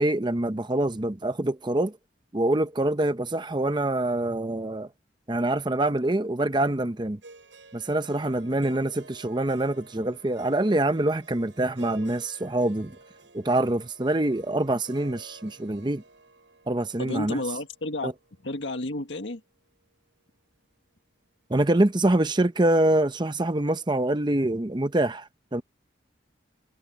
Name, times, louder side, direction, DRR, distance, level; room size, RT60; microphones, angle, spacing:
voice 1, 0.0-2.0 2.3-4.9 5.3-7.2 7.7-12.9 13.3-16.0 16.7-17.4 18.0-18.1 21.5-25.6, right 1 dB, 25° right, 0.8 m, -25 dB
Harp, 7.2-19.4, right 3 dB, 80° right, 6.6 m, -52 dB
voice 2, 17.0-18.1 18.4-19.4, left 2 dB, 75° left, 1.8 m, -31 dB
head